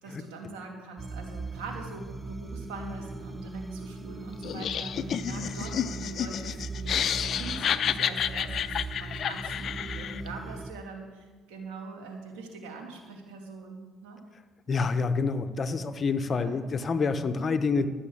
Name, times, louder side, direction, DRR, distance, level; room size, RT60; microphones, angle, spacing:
voice 1, 0.0-14.2 16.3-16.6, right 3 dB, 85° right, 2 dB, 2.7 m, -43 dB
sound 1, 1.0-10.7, right 3 dB, 20° right, 0.7 m, -39 dB
Laughter, 4.4-10.3, left 9 dB, 55° left, 0.5 m, -30 dB
voice 2, 14.7-17.9, left 4 dB, 40° left, 10 dB, 0.9 m, -27 dB
12.0 x 7.2 x 8.7 m, 1.4 s
supercardioid pair, 75°, 0 cm